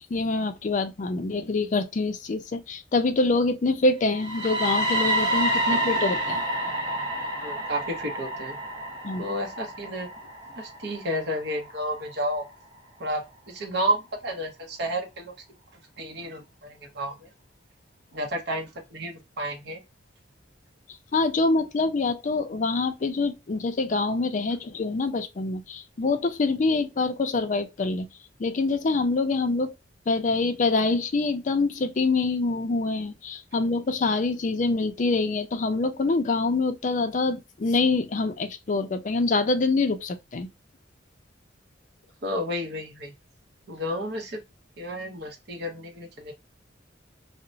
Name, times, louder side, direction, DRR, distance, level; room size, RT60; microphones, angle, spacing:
voice 1, 0.1-6.4 9.0-9.3 21.1-28.1 28.4-29.7 30.1-40.5, left 3 dB, 40° left, 0.4 m, -25 dB
sound 1, 4.1-12.0, right 1 dB, 20° right, 0.9 m, -29 dB
voice 2, 7.4-8.6 9.2-10.1 10.6-12.5 13.0-15.3 16.0-17.3 18.1-19.8 42.2-43.1 43.7-44.4 44.8-46.3, equal, 60° right, 0.8 m, -31 dB
2.9 x 2.0 x 2.5 m
head